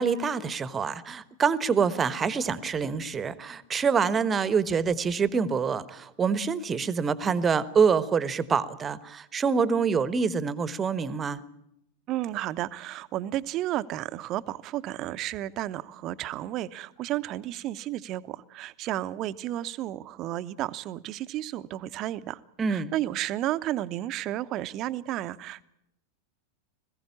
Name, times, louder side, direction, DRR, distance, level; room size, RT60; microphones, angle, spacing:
voice 1, 0.0-11.4 22.6-22.9, right 6 dB, 20° right, 17 dB, 1.1 m, -26 dB
voice 2, 12.1-22.4 22.7-25.6, right 14 dB, 35° right, 14 dB, 0.9 m, -32 dB
20.5 x 16.0 x 9.8 m, 0.81 s
figure-of-eight pair, 90°, 0 cm